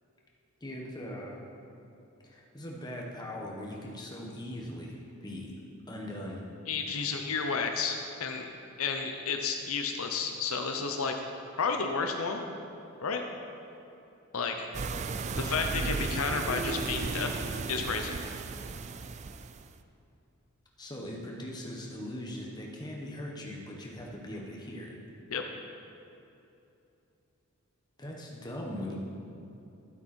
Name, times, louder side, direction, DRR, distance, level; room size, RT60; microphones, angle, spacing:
voice 1, 0.6-1.4 2.2-5.5 5.9-6.4 20.8-25.0 28.0-29.0, left 1 dB, 20° left, -2 dB, 1.3 m, -40 dB
voice 2, 6.7-8.5 8.8-11.1 11.6-12.4 13.0-13.2 14.3-14.7 15.4-17.4 17.7-18.2 25.3-25.4, left 5 dB, 75° left, 4 dB, 0.7 m, -31 dB
sound 1, 14.7-19.7, right 4 dB, 30° right, 0.3 m, -35 dB
12.5 x 8.2 x 4.4 m, 2.8 s
head